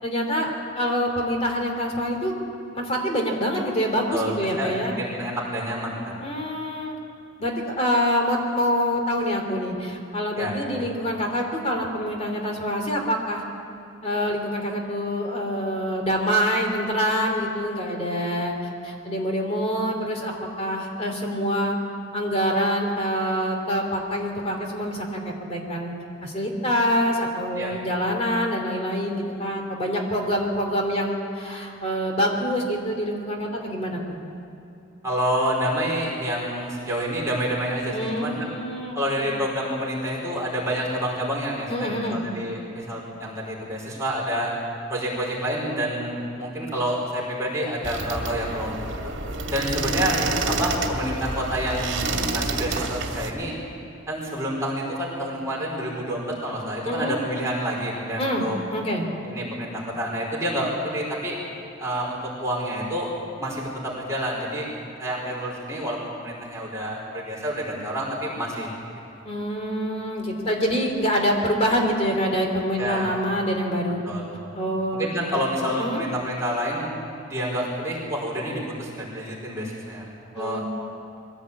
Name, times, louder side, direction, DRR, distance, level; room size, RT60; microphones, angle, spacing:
voice 1, 0.0-2.4 2.7-4.9 6.2-7.0 7.4-13.4 14.0-18.5 18.8-21.8 22.1-25.9 26.2-34.2 37.9-39.3 41.7-42.2 56.9-57.2 58.2-59.1 69.2-74.0 74.5-75.3 75.8-76.0 80.3-80.6, equal, 30° left, 2 dB, 3.0 m, -26 dB
voice 2, 4.6-6.2 10.4-10.5 27.5-27.7 35.0-38.5 38.9-44.5 44.9-49.1 49.5-53.5 54.1-58.6 59.2-59.7 60.0-61.3 61.8-63.1 63.4-64.7 65.0-68.7 72.8-73.1 74.0-74.2 74.9-76.9 77.3-80.1 80.3-80.6, equal, 15° right, -5 dB, 4.8 m, -28 dB
sound 1, 47.8-53.3, right 3 dB, 65° right, 2.3 m, -28 dB
22.5 x 16.0 x 8.5 m, 2.8 s
head